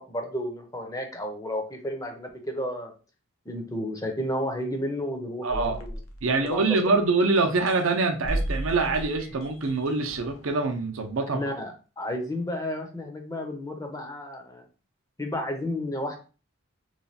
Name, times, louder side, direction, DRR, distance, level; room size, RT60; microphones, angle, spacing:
voice 1, 0.0-2.9 3.5-6.0 6.4-6.8 11.3-14.6 15.2-16.2, left 1 dB, 15° left, 3 dB, 0.6 m, -32 dB
voice 2, 5.4-5.8 6.2-11.4, right 3 dB, 70° right, 4 dB, 0.6 m, -25 dB
sound 1, 5.5-7.1 7.4-10.5, right 1 dB, 75° left, 0.7 m, -35 dB
3.1 x 2.3 x 4.0 m, 0.35 s
head